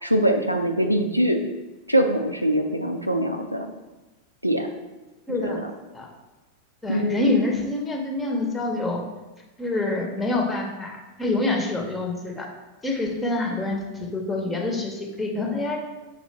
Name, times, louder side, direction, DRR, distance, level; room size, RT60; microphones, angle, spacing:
voice 1, 0.0-1.4 1.9-3.7 4.4-4.7 5.4-5.7 6.9-7.4, right 1 dB, 90° right, 5 dB, 0.4 m, -23 dB
voice 2, 5.3-5.6 5.9-6.1 6.8-9.0 9.6-12.5 12.8-15.8, left 2 dB, 15° left, 1 dB, 0.8 m, -26 dB
6.5 x 2.5 x 3.3 m, 1.1 s
figure-of-eight pair, 90°, 0 cm